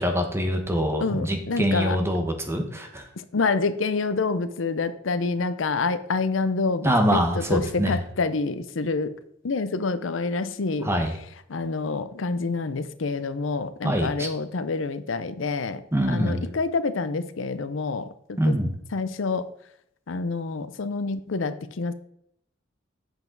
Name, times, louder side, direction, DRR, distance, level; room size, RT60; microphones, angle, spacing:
voice 1, 0.0-3.1 6.8-8.0 10.8-11.2 13.8-14.3 15.9-16.5 18.4-18.7, equal, 15° right, 4 dB, 1.3 m, -24 dB
voice 2, 1.0-2.0 3.3-9.1 9.4-10.9 11.5-15.8 16.1-18.5 18.9-19.5 20.1-21.9, left 4 dB, 90° left, 12 dB, 0.6 m, -27 dB
7.9 x 7.0 x 3.9 m, 0.74 s
head